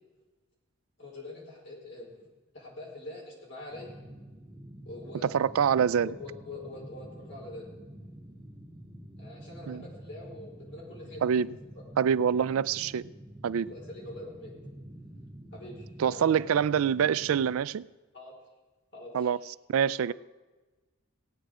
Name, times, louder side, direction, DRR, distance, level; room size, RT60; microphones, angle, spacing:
voice 1, 1.0-2.3 2.5-4.0 4.8-5.4 6.0-7.7 9.2-11.2 13.6-14.5 15.5-16.6 18.1-18.3 18.9-19.3, left 2 dB, 55° left, 4.6 m, -44 dB
sound 1, 3.7-17.5, right 1 dB, 15° right, 3.2 m, -48 dB
voice 2, 5.2-6.1 9.7-9.8 11.2-11.6 12.0-13.1 13.4-13.7 16.0-17.9 19.1-19.4 19.7-20.1, right 8 dB, 80° right, 0.3 m, -25 dB
17.5 x 9.2 x 4.9 m
head